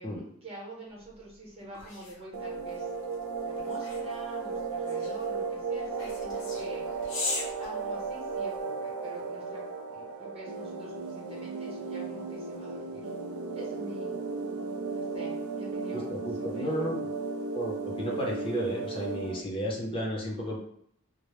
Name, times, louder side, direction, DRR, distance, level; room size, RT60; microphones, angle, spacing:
voice 1, 0.0-2.9 3.4-6.9 7.6-13.1 13.5-14.2 14.9-16.9, right 1 dB, 30° right, -4 dB, 0.8 m, -46 dB
sound 1, 1.1-8.6, left 2 dB, 65° left, 0.8 m, -40 dB
sound 2, 2.3-19.4, right 4 dB, 75° right, 0.3 m, -35 dB
voice 2, 15.9-17.0 17.5-20.6, equal, 25° left, -3 dB, 0.6 m, -33 dB
2.1 x 2.0 x 3.0 m, 0.68 s
head